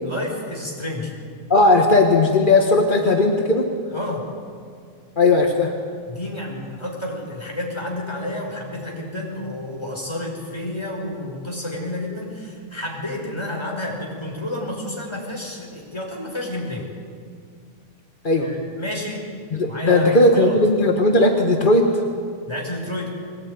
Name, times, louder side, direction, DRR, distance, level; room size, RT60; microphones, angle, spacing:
voice 1, 0.0-1.2 3.9-4.3 6.1-16.9 18.3-19.3 19.7-20.6 22.5-23.1, left 1 dB, 10° left, -1 dB, 5.1 m, -30 dB
voice 2, 1.5-3.7 5.2-5.7 18.2-18.5 19.5-22.0, left 2 dB, 35° left, 2 dB, 0.8 m, -17 dB
22.0 x 19.5 x 9.6 m, 2.1 s
omnidirectional pair, 3.6 m